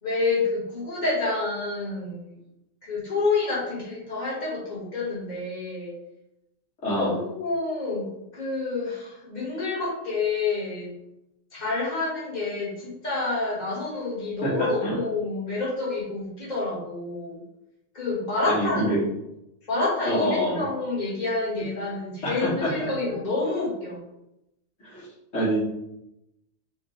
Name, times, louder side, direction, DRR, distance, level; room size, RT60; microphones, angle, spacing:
voice 1, 0.0-2.4 2.8-5.9 7.0-10.9 11.5-17.4 17.9-19.0 19.7-24.0, left 3 dB, 35° left, -7 dB, 1.7 m, -28 dB
voice 2, 6.8-7.1 14.4-14.5 14.8-14.9 18.5-19.0 20.1-20.6 22.2-22.9 24.8-25.1 25.3-25.6, equal, 70° left, -8 dB, 1.9 m, -26 dB
5.1 x 2.5 x 3.2 m, 0.86 s
omnidirectional pair, 1.3 m